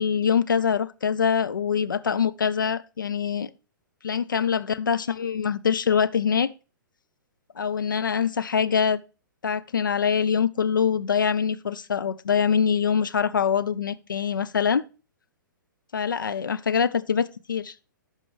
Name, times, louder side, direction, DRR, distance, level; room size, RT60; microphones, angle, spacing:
voice 1, 0.0-3.5 4.0-6.5 7.6-9.0 9.4-14.8 15.9-17.7, left 7 dB, 75° left, 0.6 m, -24 dB
12.0 x 5.3 x 3.2 m
figure-of-eight pair, 115°, 11 cm